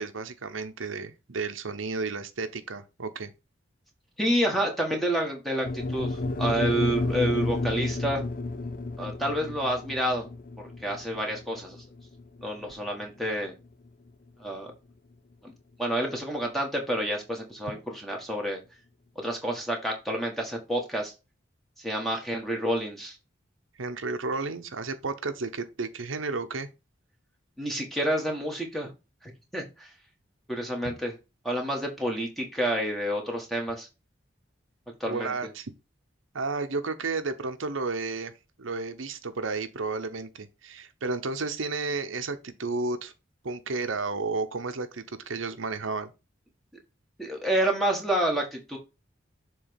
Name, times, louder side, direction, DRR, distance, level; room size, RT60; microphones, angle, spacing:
voice 1, 0.0-3.3 23.8-26.7 30.8-30.9 35.1-35.7 36.3-38.3 38.6-43.1 43.4-46.1, right 3 dB, 90° right, 0.9 m, -32 dB
voice 2, 4.2-8.2 9.0-10.3 10.8-11.8 12.4-13.5 14.4-14.7 15.4-15.5 15.8-18.6 19.2-21.1 21.8-23.2 27.6-28.9 29.2-29.9 30.5-31.1 31.4-33.9 35.0-35.3 47.2-48.8, right 1 dB, ahead, 1.6 m, -29 dB
sound 1, 5.6-13.9, left 2 dB, 45° left, 0.6 m, -32 dB
7.1 x 3.2 x 5.2 m
head